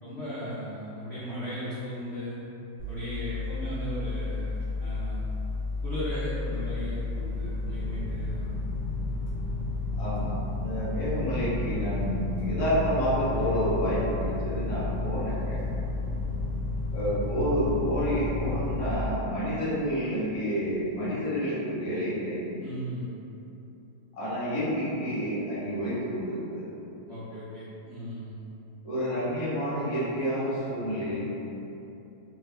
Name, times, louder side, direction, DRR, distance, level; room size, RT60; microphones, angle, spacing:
voice 1, 0.0-2.4 2.9-5.2 5.8-8.5 22.6-23.1 27.1-28.4, equal, 55° left, -11 dB, 0.8 m, -36 dB
sound 1, 2.8-19.0, left 3 dB, 30° right, 1.4 m, -32 dB
voice 2, 10.0-15.6 16.9-22.4 24.1-26.7 28.8-31.4, equal, 25° left, -11 dB, 0.7 m, -29 dB
3.6 x 3.2 x 3.3 m, 3.0 s
omnidirectional pair, 2.3 m